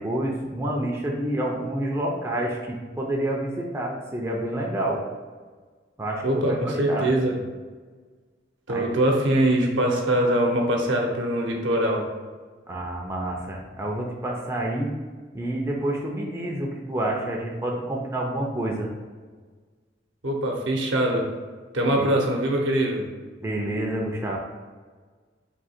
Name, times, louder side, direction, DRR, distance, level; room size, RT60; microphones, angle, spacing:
voice 1, 0.0-5.0 6.0-7.1 8.7-8.9 12.7-14.9 15.3-18.9 21.9-22.1 23.4-24.4, right 1 dB, 15° right, -2 dB, 0.5 m, -28 dB
voice 2, 6.2-7.4 8.7-12.0 20.2-21.3 21.7-23.0, right 1 dB, 75° right, 0 dB, 0.8 m, -23 dB
3.7 x 2.7 x 4.3 m, 1.5 s
head